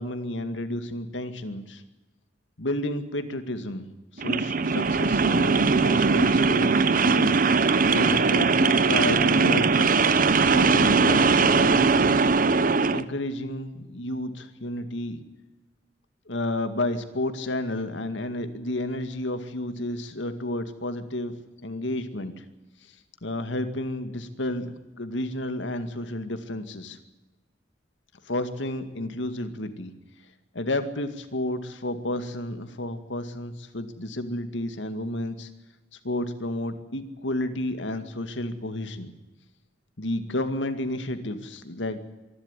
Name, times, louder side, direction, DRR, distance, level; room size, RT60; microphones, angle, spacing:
voice 1, 0.0-1.8 2.6-3.8 4.1-9.9 10.5-12.3 12.9-15.2 16.3-21.3 21.6-22.4 22.9-23.0 23.2-27.0 28.3-29.9 30.5-35.5 36.0-39.1 40.0-42.0, left 1 dB, 75° left, 8 dB, 2.2 m, -31 dB
sound 1, 4.2-13.0, right 4 dB, 50° right, 0.9 m, -20 dB
25.0 x 12.0 x 9.9 m, 1.1 s
head